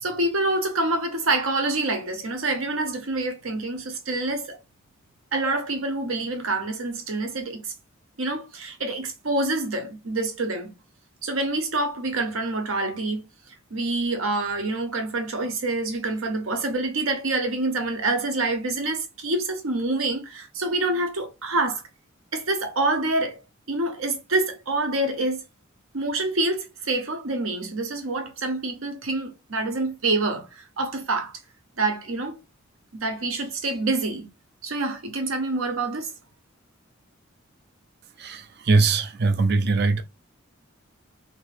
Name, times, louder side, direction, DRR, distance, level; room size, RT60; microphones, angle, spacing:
voice 1, 0.0-4.6 5.3-7.7 8.2-10.7 11.2-13.2 13.7-21.8 22.3-23.4 23.7-25.4 25.9-31.3 31.8-32.4 32.9-34.3 34.6-36.1, right 2 dB, 80° right, 0.9 m, -26 dB
voice 2, 38.2-40.0, right 3 dB, 50° right, 0.5 m, -21 dB
2.9 x 2.7 x 3.2 m
head